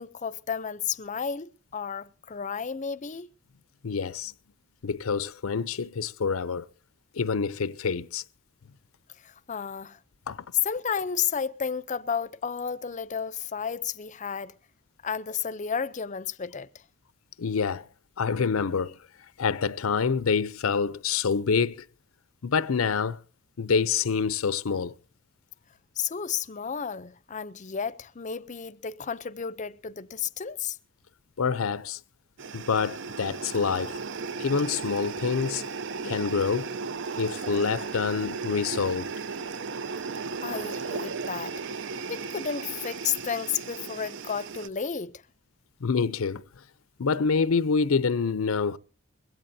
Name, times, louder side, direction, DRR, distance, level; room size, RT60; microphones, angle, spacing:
voice 1, 0.0-3.3 9.2-10.0 10.6-14.6 15.0-16.7 26.0-30.8 40.4-41.6 42.1-45.2, left 7 dB, 35° left, 0.6 m, -32 dB
voice 2, 3.8-4.3 4.8-6.7 7.1-8.2 10.3-10.4 17.4-17.9 18.2-19.0 19.4-21.8 22.4-23.2 23.6-24.9 31.4-32.0 32.5-34.0 34.4-35.6 36.0-36.7 37.2-39.1 45.8-46.4 47.0-48.8, left 5 dB, 90° left, 0.6 m, -26 dB
sound 1, 32.4-44.7, right 4 dB, 60° right, 0.6 m, -35 dB
22.0 x 16.5 x 2.7 m
head